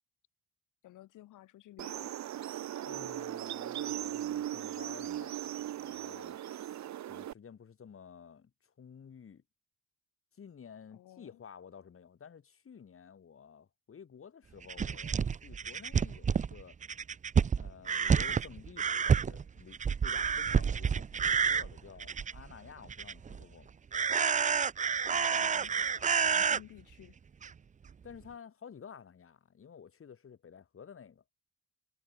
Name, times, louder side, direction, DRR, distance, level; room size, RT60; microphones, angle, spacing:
voice 1, 0.8-2.2 10.9-11.4 25.1-27.1, left 15 dB, 85° left, 5.7 m, -54 dB
sound 1, 1.8-7.3, right 12 dB, 65° right, 1.5 m, -38 dB
voice 2, 2.9-9.4 10.3-16.8 17.5-23.7 28.0-31.2, left 7 dB, 45° left, 4.3 m, -52 dB
sound 2, 14.6-22.5 22.8-23.4 23.9-26.6 27.4-27.5 27.9-28.0, right 6 dB, 25° right, 0.5 m, -29 dB
cardioid pair, 90°, 30 cm